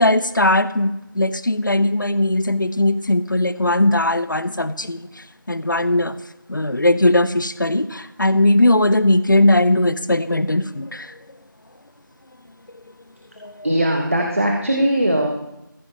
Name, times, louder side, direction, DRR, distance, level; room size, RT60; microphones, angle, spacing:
voice 1, 0.0-6.2 6.5-11.2 13.4-13.7, left 1 dB, 65° left, 15 dB, 0.7 m, -19 dB
voice 2, 13.6-15.3, right 1 dB, 35° right, 1 dB, 1.3 m, -19 dB
16.0 x 14.5 x 3.0 m, 0.91 s
figure-of-eight pair, 175°, 11 cm